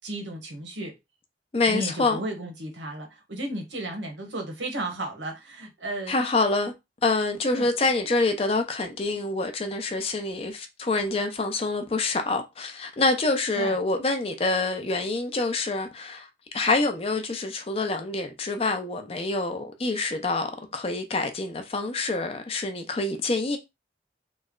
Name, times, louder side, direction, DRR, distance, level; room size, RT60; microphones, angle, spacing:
voice 1, 0.0-0.9 1.7-6.1 7.5-7.7 13.5-13.8, right 1 dB, 90° right, 1.1 m, -34 dB
voice 2, 1.5-2.2 6.1-6.7 7.0-16.3 16.5-23.6, left 3 dB, 30° left, 0.5 m, -26 dB
3.1 x 2.1 x 3.7 m
head